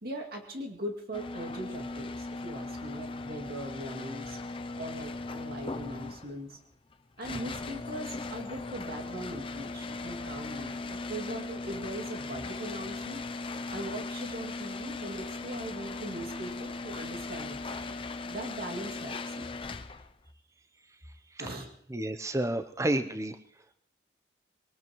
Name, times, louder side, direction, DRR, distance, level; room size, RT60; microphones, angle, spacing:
voice 1, 0.0-4.4 4.8-6.6 7.2-13.2 13.7-18.0 18.3-19.5 21.4-21.7, right 1 dB, 55° right, 1 dB, 2.4 m, -40 dB
sound 1, 1.1-20.2, left 3 dB, 30° left, 0.5 m, -38 dB
voice 2, 21.9-23.4, right 1 dB, 15° right, 9 dB, 0.7 m, -30 dB
22.5 x 19.0 x 3.1 m, 0.71 s
head